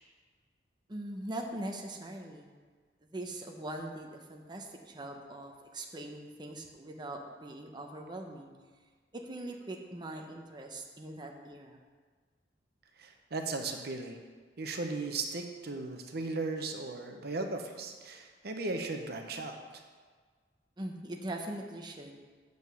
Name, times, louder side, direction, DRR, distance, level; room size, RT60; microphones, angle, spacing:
voice 1, 0.9-2.5 3.1-8.5 9.1-11.8 20.8-22.1, right 1 dB, 25° right, 2 dB, 0.8 m, -41 dB
voice 2, 13.0-14.2 14.6-19.8, right 3 dB, 60° right, 4 dB, 0.8 m, -37 dB
7.8 x 5.3 x 6.8 m, 1.5 s
head